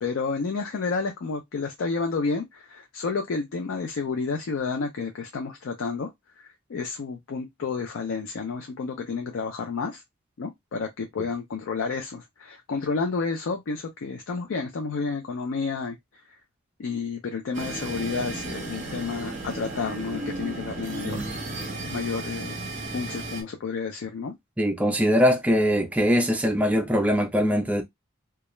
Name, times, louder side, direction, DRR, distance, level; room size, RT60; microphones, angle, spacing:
voice 1, 0.0-6.1 6.4-10.0 10.4-16.0 16.8-22.6 22.9-24.3, left 4 dB, 65° left, 0.4 m, -30 dB
sound 1, 17.5-23.4, right 2 dB, 35° right, 0.7 m, -34 dB
voice 2, 24.6-27.8, equal, 5° right, 0.3 m, -22 dB
2.3 x 2.0 x 2.9 m
head